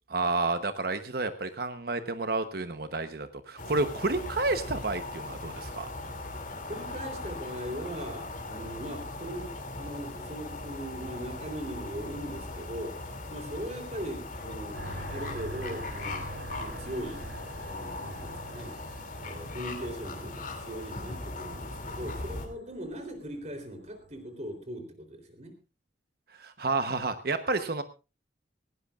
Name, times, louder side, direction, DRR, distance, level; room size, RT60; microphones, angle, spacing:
voice 1, 0.1-5.9 26.3-27.8, right 3 dB, 55° right, 9 dB, 1.0 m, -30 dB
sound 1, 3.6-22.5, left 2 dB, 45° left, 2.8 m, -39 dB
voice 2, 6.7-16.2 16.6-17.3 17.6-18.8 19.2-25.5, equal, 40° right, 6 dB, 3.6 m, -40 dB
sound 2, 14.7-24.3, right 1 dB, 75° right, 4.2 m, -46 dB
19.0 x 17.0 x 2.5 m, 0.30 s
head